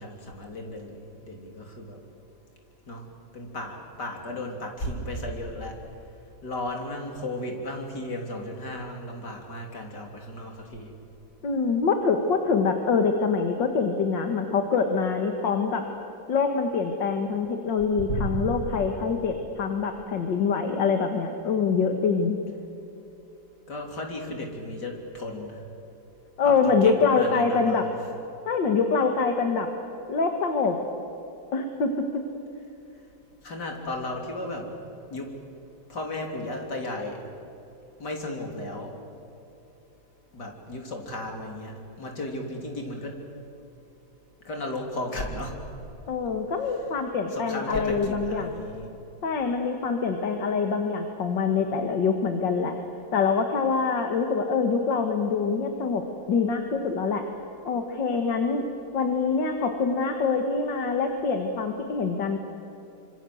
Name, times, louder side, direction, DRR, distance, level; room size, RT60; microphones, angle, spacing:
voice 1, 0.0-2.0 2.9-3.1 3.3-5.8 6.4-10.9 18.1-18.3 23.7-25.6 26.4-27.9 33.4-34.7 35.1-35.3 35.9-37.2 38.0-38.9 40.3-43.2 44.5-45.6 46.6-46.8 47.3-48.9, left 1 dB, 65° left, 2 dB, 4.0 m, -34 dB
voice 2, 11.4-15.8 16.3-22.4 26.4-27.8 28.5-29.7 30.1-30.8 31.5-32.2 46.1-48.5 49.2-52.8 53.1-57.2 57.7-58.6 58.9-62.4, left 5 dB, 85° left, 5 dB, 2.3 m, -25 dB
26.0 x 25.5 x 7.9 m, 2.9 s
omnidirectional pair, 1.9 m